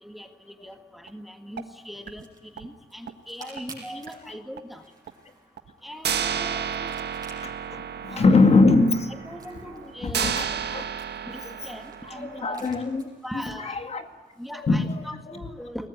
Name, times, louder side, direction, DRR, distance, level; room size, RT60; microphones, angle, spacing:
voice 1, 0.0-4.8 5.8-7.0 8.1-8.4 9.1-10.7 11.2-12.6 13.2-13.8 14.4-15.9, equal, ahead, 6 dB, 1.6 m, -40 dB
sound 1, 1.1-1.2 1.6-1.7 2.1-2.2 2.6-2.7 3.1-3.2 3.6-3.7 4.1-4.2 4.6-4.7 5.1-5.2 5.6-5.7 6.0-12.7, right 8 dB, 70° right, 1.6 m, -32 dB
sound 2, 1.6-14.6, right 2 dB, 20° right, 7.2 m, -53 dB
voice 2, 7.4-9.1 10.0-10.9 11.4-11.5 12.2-13.0 13.6-14.0 14.6-14.9, left 3 dB, 35° left, 7 dB, 2.1 m, -22 dB
22.5 x 19.5 x 9.8 m, 1.3 s
wide cardioid pair, 145°, 18 cm